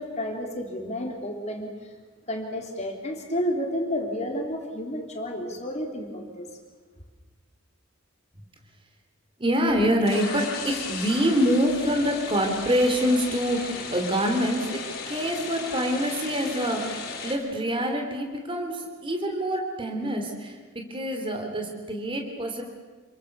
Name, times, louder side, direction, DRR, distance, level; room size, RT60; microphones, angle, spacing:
voice 1, 0.0-1.9 2.3-6.5, equal, 35° left, 2 dB, 3.5 m, -31 dB
voice 2, 9.4-22.6, equal, 25° right, 3 dB, 3.3 m, -26 dB
sound 1, 10.0-17.3, left 4 dB, 50° left, 4.6 m, -36 dB
28.0 x 23.0 x 6.9 m, 1.4 s
head